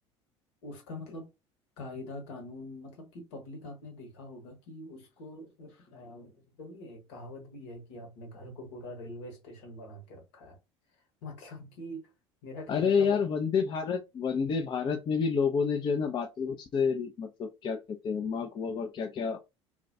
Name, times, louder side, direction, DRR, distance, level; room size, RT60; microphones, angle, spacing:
voice 1, 0.6-1.3 1.8-10.6 11.2-12.0 12.4-13.2 18.7-18.8, left 1 dB, 65° left, 1.0 m, -44 dB
voice 2, 12.7-19.4, left 6 dB, 30° left, 0.4 m, -29 dB
2.3 x 2.2 x 2.5 m
figure-of-eight pair, 60°, 15 cm